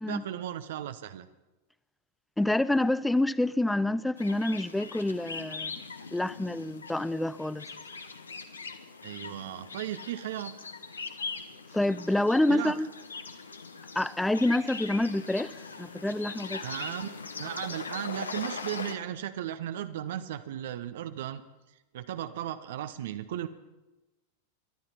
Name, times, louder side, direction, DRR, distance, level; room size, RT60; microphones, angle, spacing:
voice 1, 0.0-1.3 9.0-10.6 12.5-12.8 16.6-21.4 21.9-23.5, right 11 dB, 55° right, 0.6 m, -36 dB
voice 2, 2.4-5.8 6.1-7.6 11.7-12.9 14.0-15.5 15.8-16.6, left 1 dB, 5° left, 0.4 m, -27 dB
sound 1, 4.2-18.9, left 4 dB, 75° left, 1.0 m, -41 dB
22.5 x 11.5 x 4.2 m
figure-of-eight pair, 90°, 0 cm